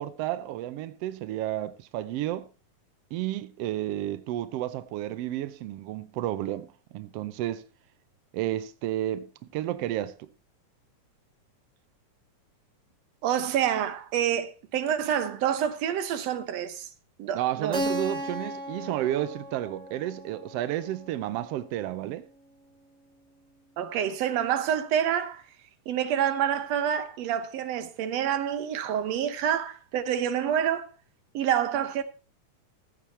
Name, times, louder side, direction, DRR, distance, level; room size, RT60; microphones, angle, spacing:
voice 1, 0.0-2.5 3.1-6.7 6.9-7.6 8.3-10.3 17.3-22.2, right 13 dB, 80° right, 1.4 m, -31 dB
voice 2, 13.2-16.9 17.2-17.8 23.8-25.4 25.9-30.9 31.3-32.0, right 9 dB, 65° right, 2.0 m, -27 dB
Keyboard (musical), 17.7-22.3, equal, 45° right, 0.9 m, -36 dB
14.5 x 8.6 x 4.2 m
omnidirectional pair, 3.6 m